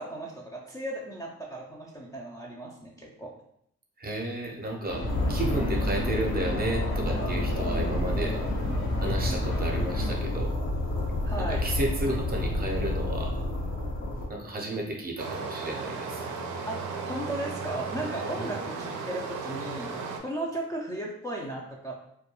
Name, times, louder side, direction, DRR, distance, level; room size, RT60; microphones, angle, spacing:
voice 1, 0.0-3.3 11.3-11.6 16.7-22.0, right 1 dB, 10° left, -5 dB, 0.4 m, -36 dB
voice 2, 4.0-8.4 9.0-10.5 11.6-13.4 14.3-16.3 18.4-18.5, right 1 dB, 30° right, 0 dB, 0.6 m, -32 dB
sound 1, 4.9-10.2, left 1 dB, 50° left, 0.8 m, -33 dB
sound 2, 5.1-14.3, left 1 dB, 75° left, 0.8 m, -30 dB
Stream, 15.2-20.2, right 4 dB, 75° right, 0.5 m, -35 dB
2.2 x 2.2 x 2.9 m, 0.71 s
cardioid pair, 90°, 30 cm